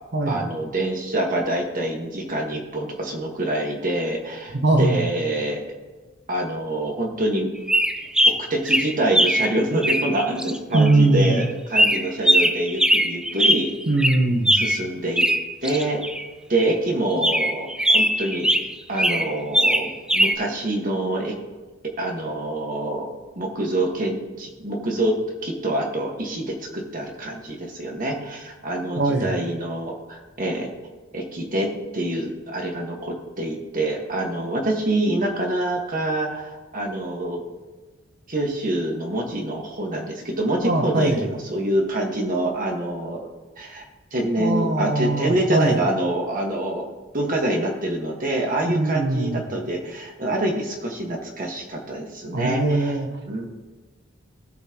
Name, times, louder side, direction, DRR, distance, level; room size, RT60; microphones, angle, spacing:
voice 1, 0.3-5.7 6.3-7.5 8.5-13.7 14.5-15.3 15.6-16.0 16.5-21.3 22.0-23.1 23.3-25.2 25.4-30.7 31.1-31.7 31.9-37.4 38.3-43.3 43.6-46.8 47.1-53.0 53.3-53.4, right 1 dB, 45° right, 0 dB, 1.6 m, -26 dB
voice 2, 4.6-5.1 10.7-11.4 13.9-14.6 29.0-29.4 40.6-41.2 44.4-45.8 48.6-49.5 52.3-53.1, right 2 dB, 60° right, 4 dB, 1.3 m, -21 dB
sound 1, 7.7-9.5 9.8-14.9 15.2-16.2 16.6-16.7 17.2-18.7 19.0-20.3, equal, 5° right, 0.4 m, -20 dB
17.0 x 5.8 x 3.0 m, 1.3 s
head